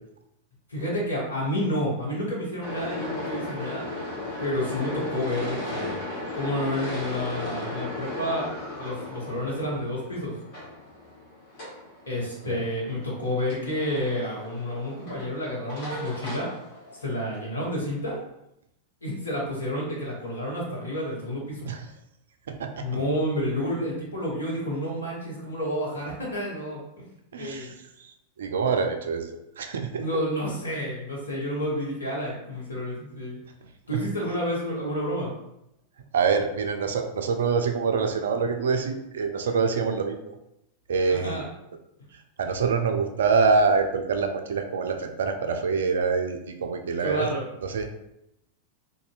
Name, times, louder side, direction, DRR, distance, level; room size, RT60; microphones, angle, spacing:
voice 1, 0.7-3.9 4.4-6.0 6.3-8.5 8.8-10.3 12.1-16.5 17.0-18.2 19.0-21.7 22.8-27.1 27.4-27.7 30.0-33.4 33.9-35.3 41.1-41.4 47.0-47.5, equal, 75° left, -5 dB, 1.0 m, -30 dB
sound 1, 2.6-17.4, left 2 dB, 45° left, 1.0 m, -36 dB
voice 2, 22.5-22.9 27.3-28.1 28.4-30.0 33.9-34.0 36.1-40.3 40.9-41.4 42.1-47.3 47.6-47.9, right 5 dB, 65° right, 6 dB, 0.3 m, -26 dB
2.5 x 2.5 x 2.4 m, 0.83 s
figure-of-eight pair, 90°, 0 cm